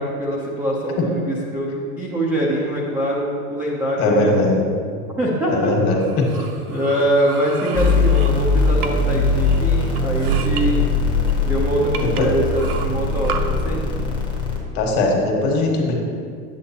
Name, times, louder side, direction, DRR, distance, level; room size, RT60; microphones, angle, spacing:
voice 1, 0.0-4.6 5.2-5.7 6.7-10.9 11.4-13.8, right 1 dB, 5° right, -6 dB, 0.4 m, -23 dB
voice 2, 4.0-4.6 5.5-6.2 12.0-12.3 14.7-15.9, left 2 dB, 35° left, 0 dB, 1.4 m, -19 dB
sound 1, 6.0-9.1 9.4-10.6 11.3-11.4 11.9-13.4, right 7 dB, 70° right, 0.8 m, -33 dB
sound 2, 7.7-14.6, left 3 dB, 10° left, 0.9 m, -20 dB
8.2 x 7.6 x 2.8 m, 2.2 s
supercardioid pair, 135°, 47 cm